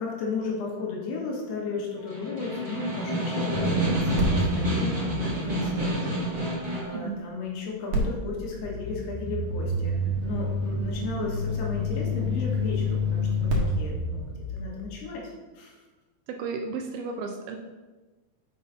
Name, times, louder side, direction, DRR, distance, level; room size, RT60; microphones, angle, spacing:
voice 1, 0.0-10.0 10.2-15.8, left 4 dB, 80° left, -2 dB, 3.4 m, -35 dB
Snare drum, 2.0-7.0, right 1 dB, 25° right, 0.9 m, -28 dB
sound 1, 3.5-6.7 7.9-14.8, left 1 dB, 65° right, 2.6 m, -29 dB
voice 2, 16.3-17.6, right 5 dB, 80° right, 3 dB, 2.3 m, -33 dB
6.9 x 6.7 x 4.1 m, 1.2 s
omnidirectional pair, 4.7 m